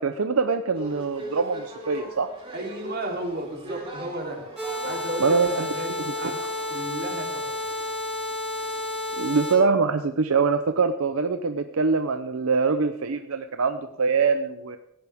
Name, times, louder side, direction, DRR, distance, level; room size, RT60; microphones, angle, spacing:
voice 1, 0.0-2.3 5.2-5.7 6.1-6.2 9.2-14.8, right 4 dB, 75° right, 8 dB, 0.7 m, -24 dB
sound 1, 0.7-8.0, right 1 dB, 25° right, 4.3 m, -41 dB
voice 2, 2.5-4.4 4.8-6.3 6.7-7.5, right 1 dB, 50° right, 1 dB, 3.1 m, -33 dB
sound 2, 4.6-9.6, left 2 dB, 5° right, 6.3 m, -31 dB
17.5 x 16.0 x 3.6 m, 0.86 s
head